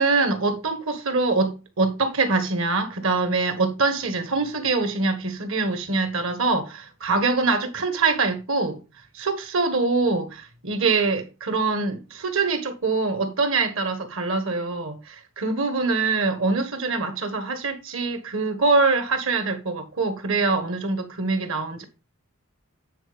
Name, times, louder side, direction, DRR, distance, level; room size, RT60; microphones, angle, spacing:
voice 1, 0.0-8.8 9.1-21.8, right 3 dB, 65° right, 1.5 m, -24 dB
8.9 x 4.4 x 5.1 m
head